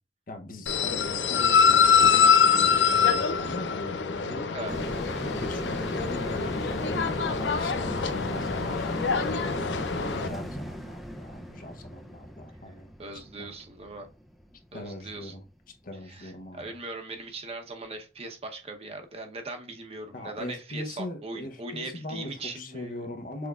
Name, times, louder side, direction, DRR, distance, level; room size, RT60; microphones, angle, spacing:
voice 1, 0.3-4.5 5.1-9.4 10.1-12.9 13.4-13.5 14.7-15.4 15.8-16.8 20.1-23.5, left 1 dB, 50° left, 0.8 m, -40 dB
sound 1, 0.7-10.3, left 6 dB, 85° left, 0.5 m, -24 dB
sound 2, 4.7-15.4 15.8-15.9, equal, ahead, 0.4 m, -37 dB
voice 2, 13.0-14.1 14.7-15.3 16.1-23.1, right 2 dB, 35° right, 0.8 m, -40 dB
6.1 x 3.4 x 2.3 m
head